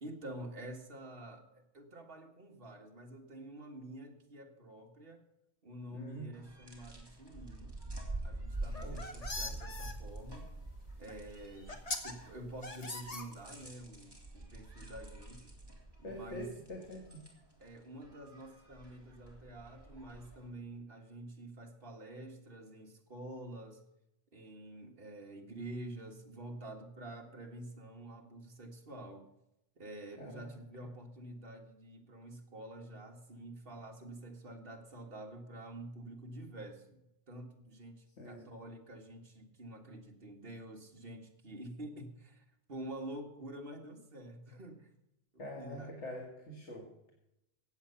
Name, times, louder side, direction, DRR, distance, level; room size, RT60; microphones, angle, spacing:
voice 1, 0.0-5.2 5.6-7.8 8.2-10.5 11.0-15.5 16.0-16.5 17.6-23.8 24.3-29.3 29.8-37.0 37.3-44.9 45.3-45.9, right 1 dB, 55° right, 1 dB, 2.0 m, -48 dB
voice 2, 5.9-6.3 8.8-9.0 16.0-17.3 30.2-30.5 38.2-38.5 45.4-47.1, equal, 90° left, 0 dB, 2.2 m, -45 dB
sound 1, 6.3-20.5, right 2 dB, 20° right, 3.0 m, -46 dB
sound 2, 8.6-9.9 11.1-11.2 11.7-12.1 12.6-13.7, left 2 dB, 35° left, 1.4 m, -41 dB
15.0 x 8.7 x 5.7 m, 0.85 s
omnidirectional pair, 1.2 m